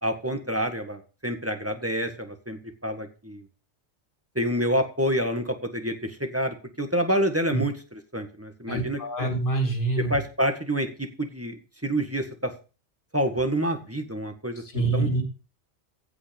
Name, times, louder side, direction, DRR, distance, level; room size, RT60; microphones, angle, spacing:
voice 1, 0.0-3.5 4.4-9.3 10.1-12.5 13.1-15.1, equal, 15° right, 6 dB, 1.7 m, -28 dB
voice 2, 8.7-10.2 14.7-15.2, right 2 dB, 50° left, 3 dB, 2.9 m, -25 dB
15.5 x 5.4 x 5.3 m, 0.34 s
omnidirectional pair, 1.1 m